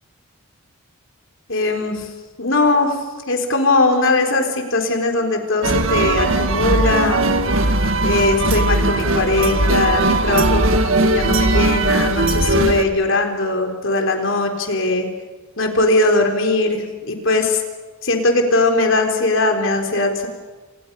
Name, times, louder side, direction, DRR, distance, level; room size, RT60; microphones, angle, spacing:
voice 1, 1.5-2.0 2.4-3.0 3.3-7.2 8.0-15.1 15.6-17.6 18.0-20.3, left 2 dB, 60° left, 4 dB, 4.0 m, -19 dB
sound 1, 5.6-12.8, right 2 dB, 70° right, 2.0 m, -18 dB
30.0 x 26.5 x 5.6 m, 1.2 s
head